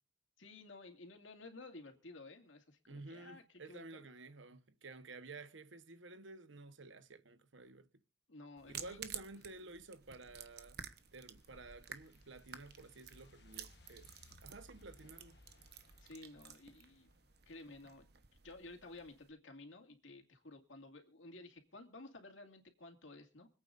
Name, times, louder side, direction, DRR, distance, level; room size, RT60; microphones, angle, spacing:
voice 1, 0.4-4.0 8.3-9.0 16.0-17.1 17.5-18.1 18.4-23.5, left 2 dB, 80° left, 2.4 m, -54 dB
voice 2, 2.9-7.9 8.7-10.8 11.1-14.1 14.4-15.4, right 3 dB, 75° right, 1.2 m, -52 dB
sound 1, 8.6-19.3, right 9 dB, 55° right, 1.1 m, -53 dB
sound 2, 10.3-17.5, left 2 dB, 55° left, 1.2 m, -64 dB
25.5 x 8.8 x 2.6 m
head